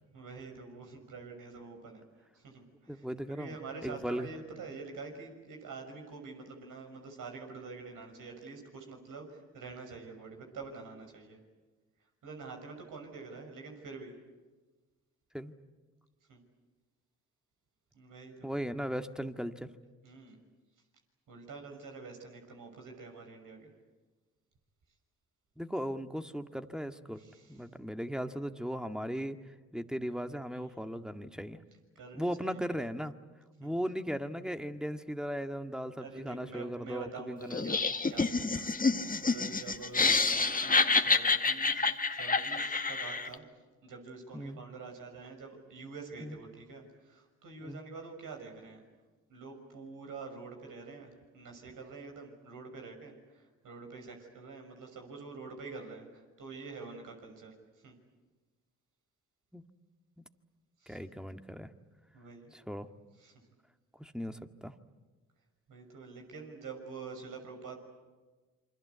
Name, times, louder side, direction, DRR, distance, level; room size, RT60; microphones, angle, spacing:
voice 1, 0.1-2.0 2.5-2.6 3.3-9.2 9.5-11.4 12.2-14.1 16.3-16.4 17.9-18.5 20.0-20.4 21.3-23.7 30.5-30.6 32.0-32.6 33.6-33.7 36.0-37.8 38.1-38.8 39.2-41.7 42.2-43.4 43.8-46.8 47.4-48.8 49.3-53.1 53.6-56.1 56.4-57.5 57.8-57.9 60.8-61.0 62.1-62.5 63.2-63.3 65.7-67.8, right 4 dB, 65° right, 4 dB, 6.3 m, -46 dB
voice 2, 2.9-4.3 15.3-15.5 18.4-19.7 25.6-27.2 27.5-29.4 29.7-31.6 32.1-33.1 33.6-37.7 44.3-44.6 46.2-46.4 47.6-47.8 59.5-59.6 60.9-61.7 62.5-62.9 64.0-64.7, equal, ahead, 7 dB, 1.9 m, -37 dB
Laughter, 37.5-43.3, left 4 dB, 25° left, 1.8 m, -28 dB
27.5 x 25.0 x 8.3 m, 1.3 s
hypercardioid pair, 50°, 34 cm